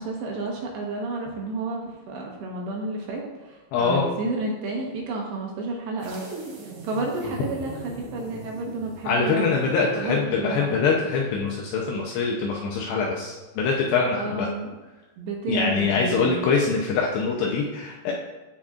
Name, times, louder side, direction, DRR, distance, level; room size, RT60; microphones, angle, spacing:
voice 1, 0.0-6.3 6.6-9.7 10.0-10.8 14.1-14.7 15.2-16.4, right 2 dB, 70° right, -1 dB, 3.1 m, -31 dB
voice 2, 3.7-4.0 9.0-14.5 15.5-18.1, left 4 dB, 80° left, -1 dB, 2.5 m, -24 dB
sound 1, 6.0-10.3, right 3 dB, 50° right, 2.6 m, -40 dB
16.0 x 5.9 x 2.5 m, 1.2 s
omnidirectional pair, 5.6 m